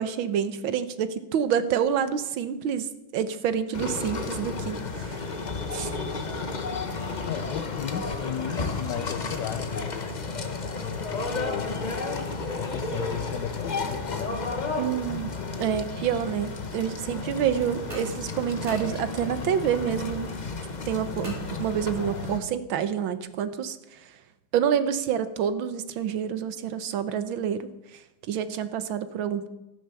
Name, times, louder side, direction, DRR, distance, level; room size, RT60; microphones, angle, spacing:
voice 1, 0.0-2.9 3.1-5.2 5.7-5.9 14.8-20.3 20.9-24.0 24.5-28.0 28.3-29.5, right 8 dB, 85° right, 12 dB, 1.7 m, -28 dB
sound 1, 3.7-22.4, left 3 dB, 30° left, 0.9 m, -32 dB
voice 2, 7.3-11.9 12.6-14.8, left 9 dB, 70° left, 8 dB, 1.4 m, -35 dB
sound 2, 17.9-19.5 21.2-22.2, right 2 dB, 30° right, 4.1 m, -42 dB
14.0 x 11.5 x 6.8 m, 0.97 s
omnidirectional pair, 2.1 m